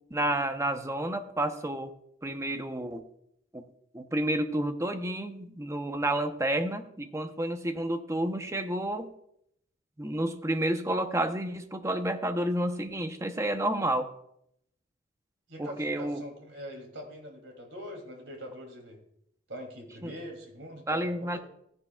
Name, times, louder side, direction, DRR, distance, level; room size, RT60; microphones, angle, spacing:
voice 1, 0.1-1.9 2.2-3.0 3.5-3.6 3.9-9.1 10.0-14.1 15.6-16.2 20.0-20.1 20.9-21.4, right 1 dB, 15° right, 7 dB, 0.8 m, -30 dB
voice 2, 15.5-19.0 19.5-21.4, equal, 80° right, 2 dB, 2.9 m, -43 dB
16.5 x 9.9 x 2.4 m, 0.73 s
head